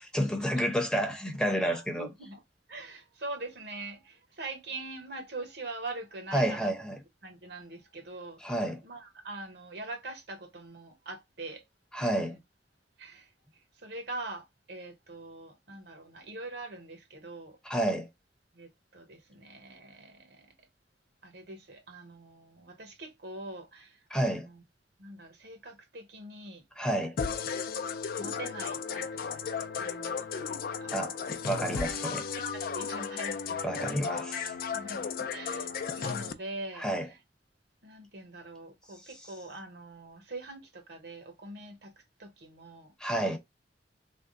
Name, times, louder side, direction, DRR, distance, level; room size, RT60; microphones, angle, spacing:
voice 1, 0.0-2.1 6.3-7.0 8.4-8.8 11.9-12.3 17.6-18.1 24.1-24.5 26.8-27.2 30.9-32.3 33.6-34.5 36.8-37.1 43.0-43.4, right 1 dB, 5° left, 0.7 m, -30 dB
voice 2, 1.7-2.4 2.7-6.7 7.2-8.4 8.8-11.6 12.0-12.4 13.0-17.6 18.5-20.7 21.2-24.6 25.0-26.6 28.2-30.5 30.8-30.9 32.5-33.6 34.7-37.2 37.8-41.9 42.2-42.9, right 2 dB, 70° right, 1.1 m, -43 dB
sound 1, 27.2-36.3, left 6 dB, 55° left, 0.4 m, -34 dB
3.5 x 2.1 x 3.7 m
head